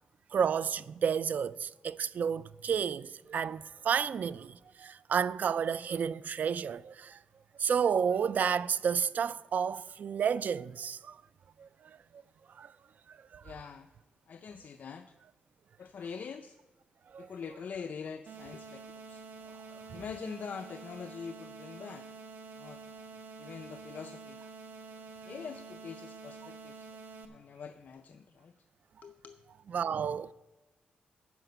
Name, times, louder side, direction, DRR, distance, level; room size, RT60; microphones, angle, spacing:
voice 1, 0.3-7.2 7.6-11.2 11.6-11.7 12.1-12.2 12.6-12.7 13.1-13.4 17.1-17.3 29.7-30.3, right 7 dB, 60° right, 0.3 m, -31 dB
voice 2, 13.4-13.9 14.3-15.1 15.8-16.6 17.2-19.2 19.9-22.1 22.6-22.8 23.4-24.4 25.2-26.9 27.3-28.5 29.0-29.4, left 6 dB, 60° left, 0.5 m, -44 dB
sound 1, 18.3-27.3, right 4 dB, 85° right, 1.0 m, -48 dB
12.0 x 5.1 x 7.9 m
cardioid pair, 105°, 3 cm